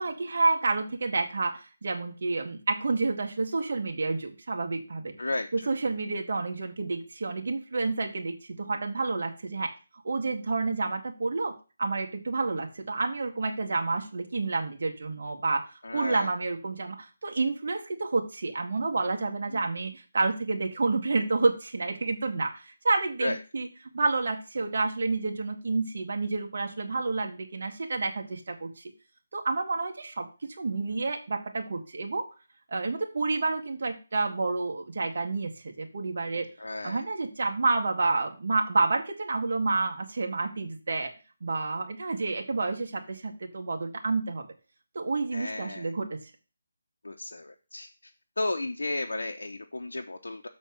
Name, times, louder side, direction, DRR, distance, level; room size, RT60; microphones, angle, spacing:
voice 1, 0.0-5.2 5.5-9.7 10.0-11.5 11.8-15.7 15.9-23.7 23.9-28.8 29.3-30.3 30.6-32.3 32.7-36.5 36.8-41.1 41.4-44.5 45.0-46.2, right 3 dB, 50° right, 3 dB, 1.8 m, -29 dB
voice 2, 15.8-16.3 19.5-19.6 23.2-23.4 36.6-37.0 45.3-45.9 47.0-47.9 48.4-50.5, left 2 dB, 90° left, 4 dB, 0.9 m, -33 dB
7.2 x 4.1 x 6.5 m, 0.33 s
figure-of-eight pair, 170°, 0 cm